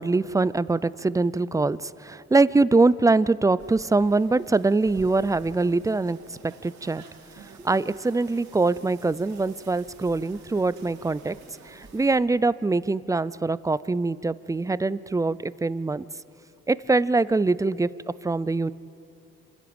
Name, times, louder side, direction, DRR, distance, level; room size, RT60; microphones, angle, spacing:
voice 1, 0.0-6.2 6.4-7.0 7.6-11.4 11.7-16.0 16.7-17.9 18.2-18.7, right 3 dB, 10° right, 18 dB, 0.4 m, -23 dB
sound 1, 3.6-12.2, right 4 dB, 70° right, 2.7 m, -49 dB
26.5 x 12.5 x 8.8 m, 2.6 s
cardioid pair, 90°, 30 cm